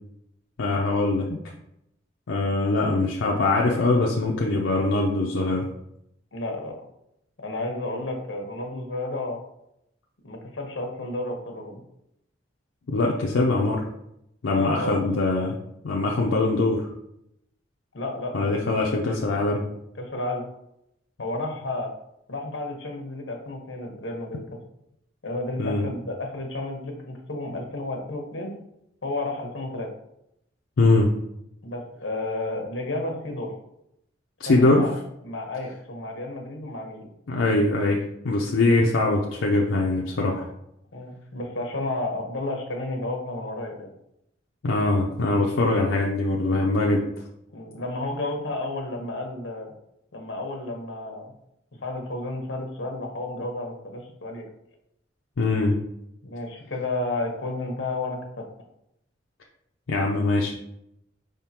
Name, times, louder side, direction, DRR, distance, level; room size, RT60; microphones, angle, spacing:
voice 1, 0.6-1.4 2.3-5.7 12.9-13.9 14.4-15.5 15.8-16.9 18.3-19.6 25.6-25.9 30.8-31.1 34.4-34.9 37.3-40.5 44.6-47.1 55.4-55.8 59.9-60.5, left 2 dB, 90° left, -1 dB, 0.5 m, -22 dB
voice 2, 6.3-6.8 7.4-9.4 10.2-11.8 14.5-15.0 17.9-18.9 20.0-20.5 21.2-21.9 22.3-24.6 25.2-28.5 29.0-29.9 31.6-33.5 34.4-34.9 35.2-37.1 40.9-43.9 47.5-49.7 50.1-51.3 51.8-54.5 56.2-58.5, left 2 dB, 70° left, 2 dB, 1.0 m, -32 dB
5.1 x 3.6 x 2.9 m, 0.80 s
head